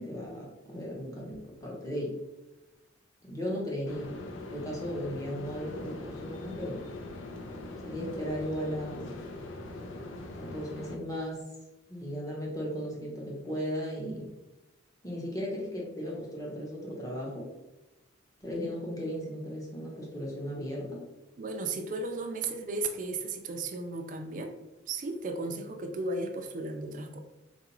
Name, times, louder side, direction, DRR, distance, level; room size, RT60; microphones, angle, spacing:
voice 1, 0.0-2.1 3.2-4.2 4.5-6.8 7.8-9.1 10.4-11.4 11.9-14.3 15.0-17.5 18.4-21.0, equal, 15° left, -4 dB, 0.8 m, -36 dB
sound 1, 3.9-11.0, left 2 dB, 80° left, 0.5 m, -42 dB
voice 2, 21.4-24.5 24.9-27.2, right 2 dB, 40° right, 6 dB, 0.3 m, -35 dB
3.8 x 2.4 x 2.9 m, 1.0 s
head